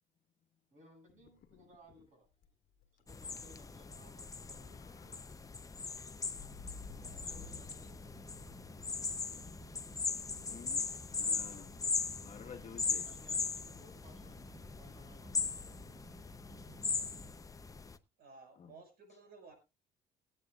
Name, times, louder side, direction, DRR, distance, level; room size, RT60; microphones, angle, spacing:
voice 1, 0.7-2.3 3.0-5.2 7.0-8.0 13.1-16.0, right 1 dB, 45° right, 1 dB, 8.0 m, -62 dB
sound 1, 1.1-2.1 2.4-2.5 2.8-3.0 4.2-5.2 5.8-8.0, left 5 dB, 60° left, 1.5 m, -53 dB
sound 2, 3.1-18.0, left 4 dB, 20° left, 0.7 m, -39 dB
sound 3, 6.4-17.3, right 1 dB, 20° right, 4.5 m, -56 dB
voice 2, 10.5-11.7 12.2-13.0 18.6-18.7, left 6 dB, 40° left, 4 dB, 1.5 m, -51 dB
voice 3, 18.2-19.5, right 4 dB, 70° right, 4 dB, 5.3 m, -55 dB
21.5 x 8.6 x 2.4 m, 0.26 s
cardioid pair, 110°, 17 cm